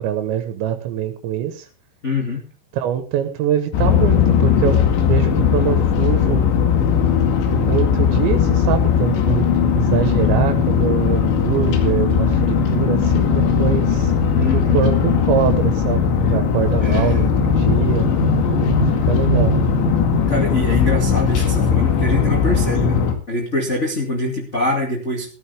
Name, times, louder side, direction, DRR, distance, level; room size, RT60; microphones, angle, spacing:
voice 1, 0.0-1.7 2.7-6.5 7.5-14.1 14.5-18.1 18.4-19.5, right 10 dB, 85° right, 8 dB, 3.6 m, -24 dB
voice 2, 2.0-2.4 14.3-14.8 16.8-17.3 20.3-25.3, left 2 dB, 25° left, -1 dB, 1.9 m, -24 dB
sound 1, 3.7-23.1, left 6 dB, 85° left, 4.4 m, -18 dB
15.0 x 14.5 x 3.5 m, 0.36 s
omnidirectional pair, 5.1 m